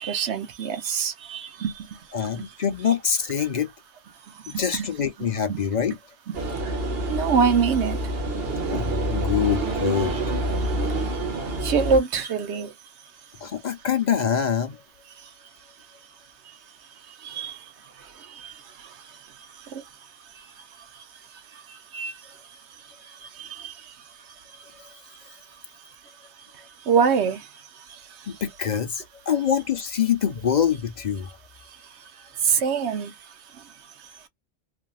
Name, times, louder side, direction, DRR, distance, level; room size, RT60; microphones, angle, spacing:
voice 1, 0.0-2.5 4.3-4.9 5.5-5.6 6.3-6.4 6.6-6.7 7.0-8.0 9.7-10.1 10.6-12.7 15.2-15.3 16.5-16.6 17.1-17.7 18.0-19.2 19.5-19.8 20.3-20.5 20.9-21.0 21.5-22.2 23.0-23.9 26.8-28.4 32.4-33.1 33.5-33.6, right 6 dB, 90° right, 1.0 m, -27 dB
voice 2, 2.1-3.7 4.5-6.0 8.7-10.1 13.4-14.8 28.3-31.3, left 8 dB, 50° left, 0.7 m, -25 dB
sound 1, 6.3-12.0, right 1 dB, 65° right, 1.1 m, -27 dB
3.4 x 2.4 x 2.3 m
omnidirectional pair, 1.1 m